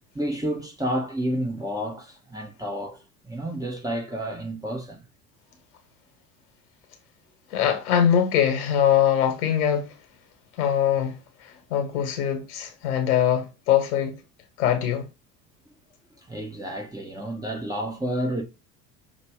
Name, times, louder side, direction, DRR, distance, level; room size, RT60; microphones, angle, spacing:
voice 1, 0.1-5.0 16.3-18.4, right 1 dB, 10° right, 0.9 m, -30 dB
voice 2, 7.5-9.9 10.6-14.2 14.6-15.1, left 9 dB, 65° left, 1.3 m, -22 dB
5.8 x 2.5 x 3.4 m
figure-of-eight pair, 70°, 48 cm